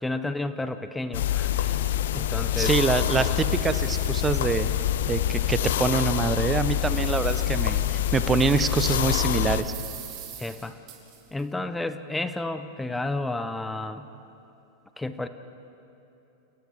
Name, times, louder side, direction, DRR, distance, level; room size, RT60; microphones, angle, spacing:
voice 1, 0.0-1.8 2.1-2.7 3.2-3.3 6.9-7.0 10.4-10.8 11.3-14.1 15.0-15.3, left 2 dB, 5° left, 11 dB, 0.9 m, -31 dB
sound 1, 1.1-9.6, left 11 dB, 55° left, 0.7 m, -26 dB
voice 2, 2.6-4.7 5.0-9.7, right 5 dB, 15° right, 12 dB, 1.0 m, -25 dB
sound 2, 3.0-5.4 5.8-5.9 6.4-9.2 9.5-11.4, right 9 dB, 35° right, 4.2 m, -45 dB
29.0 x 28.5 x 3.6 m, 3.0 s
figure-of-eight pair, 90°, 0 cm